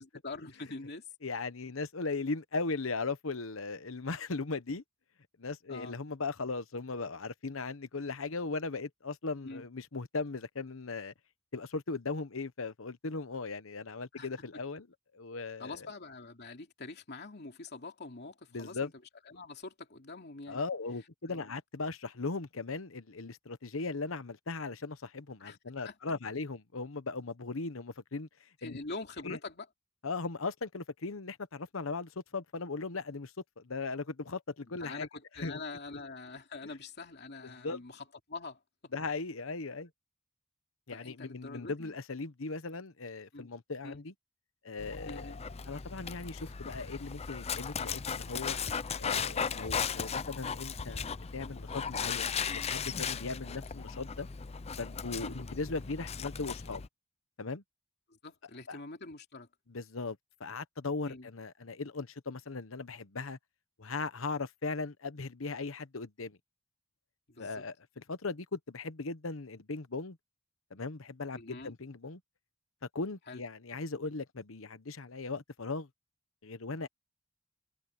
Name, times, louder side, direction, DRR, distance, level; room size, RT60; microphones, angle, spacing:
voice 1, 0.0-1.1 5.7-6.0 9.4-9.7 14.1-14.6 15.6-18.9 19.3-20.6 21.3-21.4 25.4-25.6 25.8-26.0 28.6-29.7 34.8-38.9 40.9-41.9 43.3-43.5 43.8-44.0 45.0-45.4 55.2-55.5 58.1-59.5 61.0-61.3 67.3-67.6 71.3-71.7 73.3-73.4, left 3 dB, 55° left, 2.9 m, -45 dB
voice 2, 1.2-4.8 5.4-11.1 11.5-14.9 15.1-15.8 18.5-18.9 20.5-28.3 28.6-28.8 29.2-29.4 30.0-35.1 35.4-35.6 37.4-37.8 38.9-39.9 40.9-44.1 44.6-45.3 45.7-48.6 49.0-51.1 51.3-54.3 54.8-56.8 57.4-57.6 58.7-58.8 59.7-63.4 63.8-66.4 67.4-70.2 70.7-72.2 72.9-75.9 76.4-76.9, left 3 dB, 75° left, 1.1 m, -38 dB
Dog, 44.8-56.9, left 6 dB, 30° left, 0.5 m, -37 dB
head